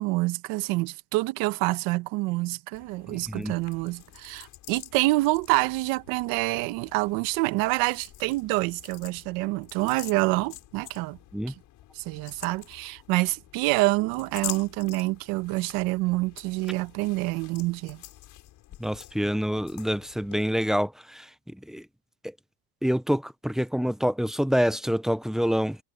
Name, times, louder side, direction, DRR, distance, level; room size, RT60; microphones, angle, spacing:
voice 1, 0.0-11.2 11.9-18.0, right 21 dB, 80° right, 1.2 m, -27 dB
sound 1, 2.7-20.4, left 14 dB, 60° left, 7.5 m, -46 dB
voice 2, 3.1-3.5 11.3-11.5 18.8-21.9 22.8-25.8, equal, ahead, 0.7 m, -27 dB
cardioid pair, 125°, 35 cm